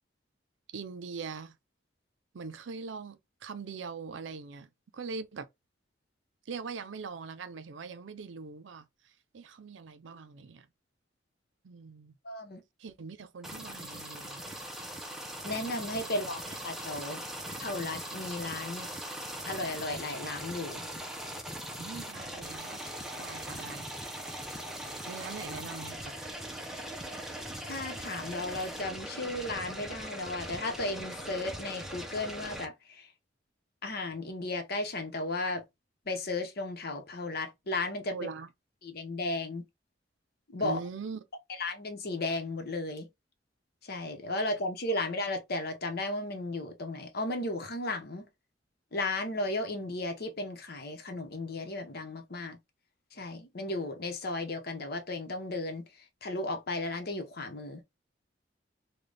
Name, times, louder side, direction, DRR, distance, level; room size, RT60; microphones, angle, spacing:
voice 1, 0.7-1.6 2.3-5.5 6.5-10.7 11.6-12.1 12.8-14.5 16.2-16.3 21.8-22.9 23.2-23.9 25.1-26.2 38.1-38.5 40.6-41.2 44.4-44.5, right 5 dB, 85° right, 0.5 m, -42 dB
voice 2, 12.2-12.6 15.4-17.2 17.6-18.9 19.4-20.8 27.6-33.1 33.8-35.6 36.1-38.2 38.8-39.6 40.5-40.8 41.6-43.1 43.8-48.2 48.9-52.6 53.1-55.8 56.2-57.8, left 2 dB, 55° left, 0.9 m, -35 dB
sound 1, 13.4-32.7, right 1 dB, ahead, 0.6 m, -40 dB
3.9 x 2.3 x 3.3 m
head